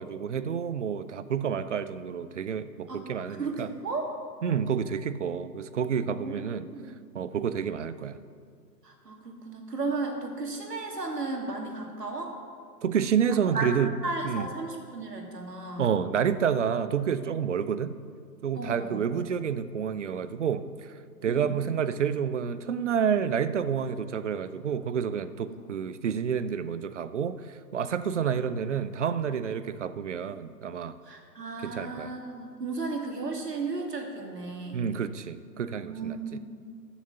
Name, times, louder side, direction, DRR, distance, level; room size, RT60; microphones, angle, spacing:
voice 1, 0.0-3.7 4.4-6.7 7.1-8.2 12.8-13.9 14.2-14.4 15.8-17.9 18.4-20.9 21.2-30.9 31.6-32.1 34.7-36.2, right 7 dB, 45° right, 14 dB, 0.6 m, -29 dB
voice 2, 3.4-4.1 6.0-6.9 8.8-12.3 13.5-13.7 14.0-15.9 18.6-19.0 21.3-21.6 25.5-25.6 28.2-28.3 31.1-34.8 35.8-36.4, right 3 dB, 70° right, 2 dB, 2.5 m, -34 dB
13.5 x 7.2 x 6.9 m, 2.2 s
figure-of-eight pair, 130°, 49 cm